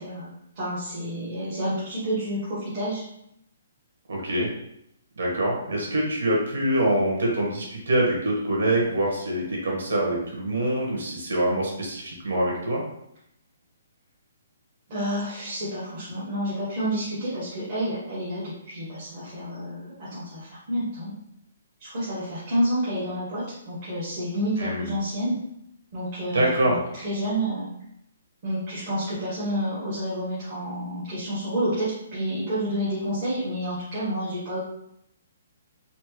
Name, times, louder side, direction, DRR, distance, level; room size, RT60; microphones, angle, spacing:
voice 1, 0.0-3.0 14.9-21.1 21.8-25.4 25.9-27.7 28.4-34.6, equal, 30° right, -11 dB, 1.2 m, -29 dB
voice 2, 4.1-4.5 5.2-12.8 24.6-24.9 26.3-26.8, right 1 dB, 85° right, -2 dB, 1.5 m, -25 dB
4.2 x 2.1 x 3.1 m, 0.77 s
hypercardioid pair, 175°, 0 cm